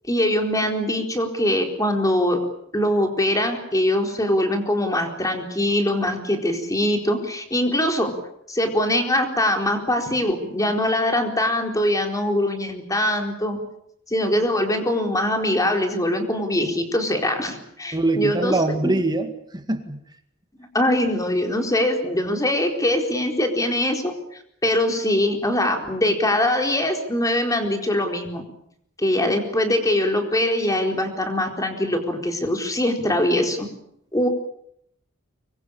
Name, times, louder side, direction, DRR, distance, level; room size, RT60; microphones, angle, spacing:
voice 1, 0.1-2.4 2.7-8.1 8.5-13.6 14.1-18.9 20.7-24.1 24.6-28.4 29.0-33.6 34.1-34.3, left 1 dB, 15° left, 4 dB, 4.2 m, -22 dB
voice 2, 17.9-20.0, right 2 dB, 20° right, 6 dB, 2.0 m, -23 dB
25.0 x 22.5 x 8.7 m, 0.73 s
head